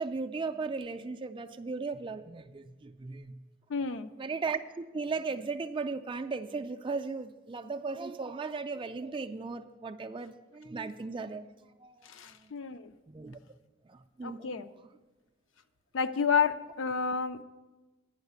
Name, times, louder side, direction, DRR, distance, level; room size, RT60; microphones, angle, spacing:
voice 1, 0.0-3.4 4.2-11.4 11.8-12.0 12.3-12.5 13.1-13.4 13.9-14.6, right 4 dB, 25° right, 8 dB, 0.3 m, -37 dB
voice 2, 3.7-4.1 12.0-12.9 14.2-14.7 15.9-17.4, left 6 dB, 70° left, 11 dB, 0.5 m, -30 dB
10.5 x 5.6 x 8.1 m, 1.2 s
head